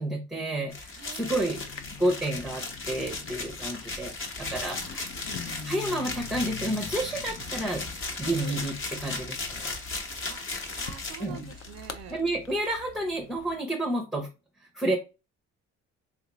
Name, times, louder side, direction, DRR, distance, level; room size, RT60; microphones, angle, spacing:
voice 1, 0.0-1.6 2.0-5.1 5.6-7.8 8.2-9.7 11.2-11.5 12.1-14.3 14.7-15.0, right 1 dB, ahead, 1 dB, 0.6 m, -30 dB
sound 1, 0.7-11.9, left 3 dB, 40° left, 0.9 m, -36 dB
voice 2, 1.0-1.7 4.8-4.9 5.4-5.8 8.2-8.6 10.2-10.4 10.7-12.2, right 9 dB, 55° right, 9 dB, 0.4 m, -46 dB
sound 2, 1.4-13.6, left 7 dB, 60° left, 0.5 m, -45 dB
3.7 x 2.4 x 2.9 m, 0.29 s
cardioid pair, 90°, 30 cm